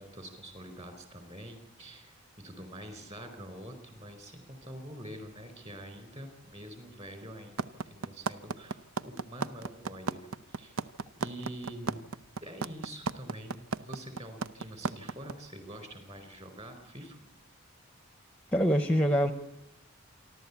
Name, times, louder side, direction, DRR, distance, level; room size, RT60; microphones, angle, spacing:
voice 1, 0.0-10.8 11.1-12.0 12.4-17.2, right 1 dB, 30° right, 8 dB, 4.6 m, -46 dB
sound 1, 7.6-15.3, right 4 dB, 90° right, 0.7 m, -33 dB
voice 2, 18.5-19.3, equal, 5° left, 10 dB, 0.8 m, -24 dB
28.0 x 12.5 x 8.4 m, 0.85 s
head